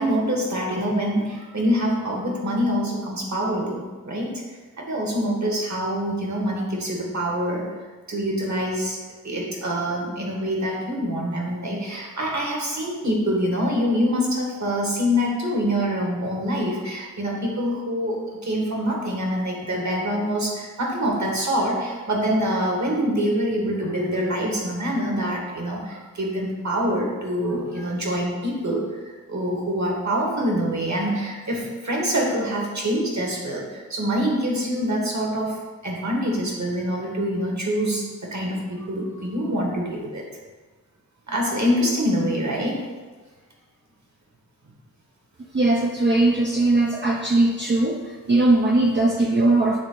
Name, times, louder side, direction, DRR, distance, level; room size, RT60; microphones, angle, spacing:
voice 1, 0.0-4.3 4.8-7.6 8.1-9.0 9.2-35.6 35.8-40.2 41.3-42.8, equal, 55° right, -2 dB, 1.9 m, -25 dB
voice 2, 45.5-49.8, right 2 dB, 35° right, 0 dB, 0.6 m, -20 dB
8.6 x 3.6 x 4.0 m, 1.3 s
cardioid pair, 45°, 34 cm